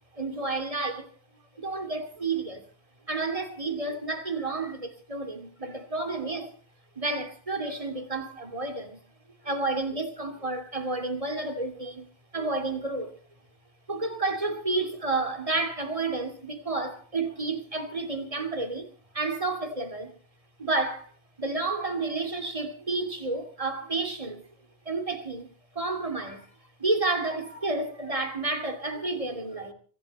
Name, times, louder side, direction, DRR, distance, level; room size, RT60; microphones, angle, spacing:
voice 1, 0.1-1.1 1.6-2.7 3.1-6.5 7.0-9.0 9.4-12.1 12.3-13.2 13.9-18.9 19.1-20.1 20.6-21.1 21.4-24.4 24.8-25.5 25.7-26.5 26.8-29.7, right 3 dB, 30° right, 2.7 m, -30 dB
24.5 x 12.0 x 4.2 m
omnidirectional pair, 1.1 m